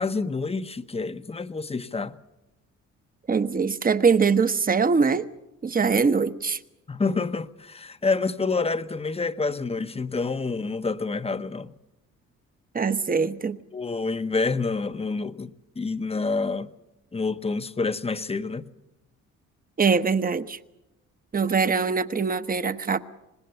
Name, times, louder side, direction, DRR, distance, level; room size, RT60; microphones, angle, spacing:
voice 1, 0.0-2.2 6.9-11.7 13.7-16.7 17.1-18.7, left 4 dB, 20° left, 0.9 m, -28 dB
voice 2, 3.3-5.3 5.6-6.6 12.7-13.6 19.8-20.6 21.3-23.0, right 5 dB, 30° right, 1.0 m, -22 dB
25.0 x 20.0 x 6.9 m
cardioid pair, 90°, 30 cm